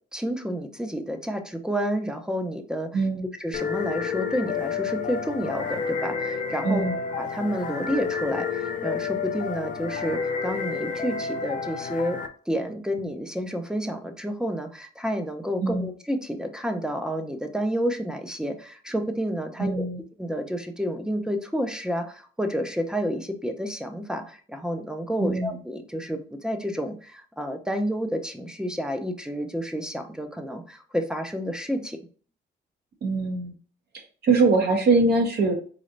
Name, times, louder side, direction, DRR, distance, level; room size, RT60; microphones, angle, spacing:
voice 1, 0.1-3.0 3.4-6.8 7.2-12.2 12.5-19.8 20.2-32.0, equal, 5° right, 6 dB, 0.6 m, -30 dB
voice 2, 2.9-3.3 6.6-7.0 15.6-15.9 19.6-20.0 25.2-25.6 33.0-33.5 33.9-35.5, right 3 dB, 55° right, 2 dB, 1.0 m, -23 dB
sound 1, 3.5-12.3, left 5 dB, 40° left, 0.5 m, -30 dB
4.0 x 3.2 x 2.5 m, 0.42 s
cardioid pair, 90°, 20 cm